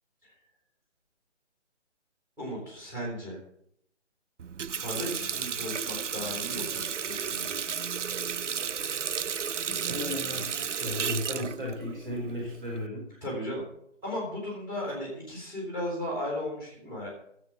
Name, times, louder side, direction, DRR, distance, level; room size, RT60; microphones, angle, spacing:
voice 1, 2.4-3.4 4.8-7.5 13.2-13.6 14.0-17.1, left 1 dB, 5° right, -3 dB, 3.0 m, -35 dB
Water tap faucet, 4.4-12.9, right 7 dB, 85° right, 0.6 m, -33 dB
voice 2, 9.7-13.0, left 1 dB, 45° right, -3 dB, 5.0 m, -35 dB
12.5 x 7.5 x 6.9 m, 0.70 s
figure-of-eight pair, 165°, 35 cm